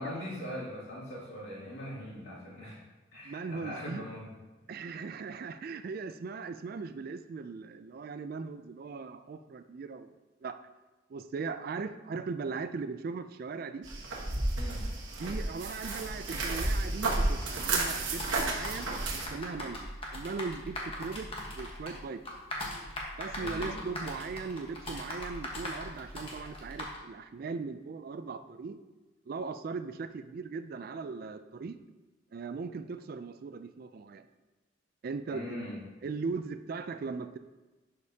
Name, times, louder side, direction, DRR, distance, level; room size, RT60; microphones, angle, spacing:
voice 1, 0.0-2.8 3.1-4.3 14.6-14.8 23.4-23.7 35.3-35.8, left 1 dB, 60° left, -6 dB, 2.6 m, -41 dB
voice 2, 3.2-4.0 4.7-10.6 11.1-13.9 15.2-22.2 23.2-28.8 29.3-31.8 32.3-34.3 35.0-35.6 36.0-37.4, right 4 dB, 45° right, 10 dB, 0.3 m, -39 dB
sound 1, 13.8-19.3, right 2 dB, 70° right, 1.3 m, -32 dB
sound 2, 17.4-27.0, left 1 dB, 30° left, 1.2 m, -40 dB
11.0 x 5.1 x 2.8 m, 1.2 s
head